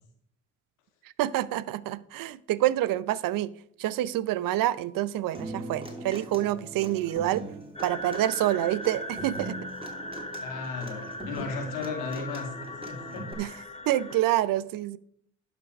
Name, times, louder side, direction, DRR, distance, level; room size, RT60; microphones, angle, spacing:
voice 1, 1.2-3.5 3.8-7.4 7.8-9.6 13.4-13.5 13.9-15.0, right 14 dB, 65° right, 0.6 m, -27 dB
Human voice / Acoustic guitar, 5.3-13.3, right 2 dB, 15° right, 2.9 m, -41 dB
sound 1, 7.7-14.2, left 1 dB, 15° left, 1.5 m, -39 dB
voice 2, 10.4-12.5 12.9-13.3, left 4 dB, 90° left, 2.1 m, -35 dB
11.5 x 6.1 x 5.3 m
hypercardioid pair, 55°, 36 cm